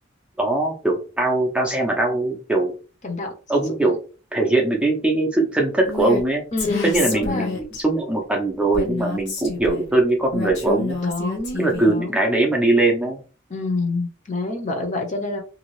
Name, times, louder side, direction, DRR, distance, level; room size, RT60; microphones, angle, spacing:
voice 1, 0.4-2.7 3.5-4.0 4.3-6.4 6.8-11.0 11.6-13.2, right 2 dB, 5° right, 0 dB, 0.5 m, -21 dB
Female speech woman speaking, 5.9-6.2 6.6-7.8 8.7-9.9 10.3-12.0, left 3 dB, 60° left, 1.0 m, -28 dB
voice 2, 6.5-7.6 11.0-12.2 13.5-15.4, left 2 dB, 40° left, 3 dB, 0.7 m, -27 dB
2.6 x 2.3 x 3.0 m, 0.36 s
head